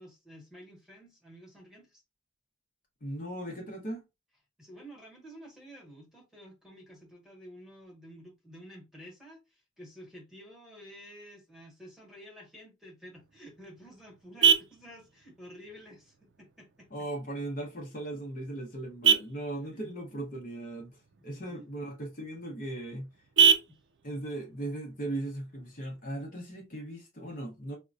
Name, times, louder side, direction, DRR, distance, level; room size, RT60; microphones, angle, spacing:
voice 1, 0.0-2.0 4.6-17.1 19.6-19.9 21.1-21.7 23.7-23.8, equal, 5° right, 1.2 m, -51 dB
voice 2, 3.0-4.0 16.9-20.9 21.2-23.1 24.0-27.8, right 1 dB, 45° left, 0.8 m, -38 dB
Vehicle horn car horn honking, 13.1-26.1, right 7 dB, 65° right, 0.4 m, -31 dB
4.4 x 2.2 x 2.5 m
head